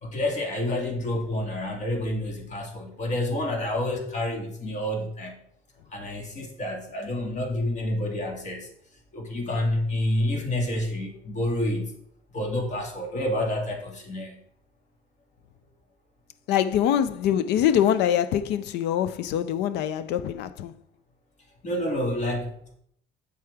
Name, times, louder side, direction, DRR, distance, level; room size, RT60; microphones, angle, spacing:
voice 1, 0.0-5.4 5.9-8.7 9.1-12.0 12.3-14.4 21.6-22.8, left 1 dB, 45° left, 2.2 m, -29 dB
voice 2, 16.5-20.7, left 10 dB, 85° left, 0.5 m, -24 dB
8.0 x 7.6 x 3.5 m
cardioid pair, 110°, 17 cm